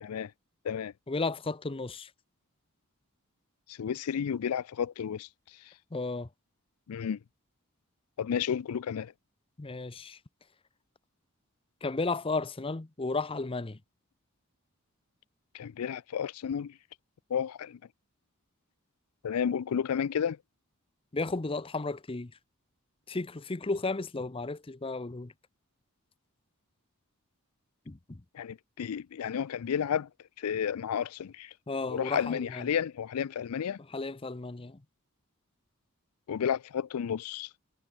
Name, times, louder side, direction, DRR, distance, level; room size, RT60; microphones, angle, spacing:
voice 1, 0.0-0.3 0.6-0.9 3.7-5.3 6.9-7.2 8.2-9.1 15.5-16.7 17.3-17.8 19.2-20.4 28.3-30.1 30.4-31.5 31.9-33.8 36.3-37.5, left 8 dB, 85° left, 0.4 m, -32 dB
voice 2, 1.1-2.1 5.9-6.3 9.6-10.2 11.8-13.8 21.1-22.3 23.1-25.3 27.9-28.2 31.7-32.7 33.8-34.8, left 3 dB, 25° left, 0.7 m, -34 dB
head